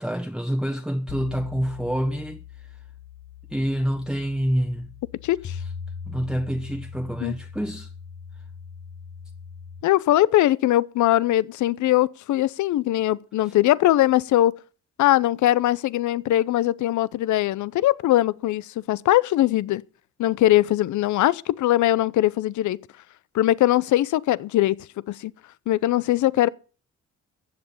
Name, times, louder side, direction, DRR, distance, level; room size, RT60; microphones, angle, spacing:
voice 1, 0.0-2.7 3.5-4.9 5.6-5.7 6.1-7.9 13.4-13.5, equal, ahead, 1.2 m, -27 dB
sound 1, 1.1-9.8, left 7 dB, 45° left, 1.5 m, -40 dB
voice 2, 5.2-5.6 7.2-7.3 9.8-14.6 15.0-19.8 20.2-22.8 23.3-24.8 25.1-25.3 25.7-26.5, left 14 dB, 75° left, 0.7 m, -21 dB
14.5 x 8.0 x 7.1 m
cardioid pair, 90°, 30 cm